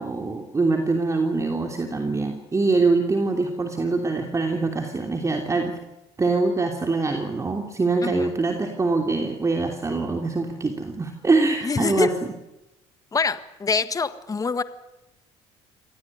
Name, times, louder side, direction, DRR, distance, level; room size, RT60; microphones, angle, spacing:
voice 1, 0.0-5.8 6.2-12.1, right 3 dB, 25° right, 4 dB, 3.1 m, -24 dB
voice 2, 11.6-12.1 13.1-14.6, left 4 dB, 25° left, 12 dB, 1.6 m, -25 dB
25.0 x 18.0 x 9.9 m, 0.94 s
supercardioid pair, 85°, 13 cm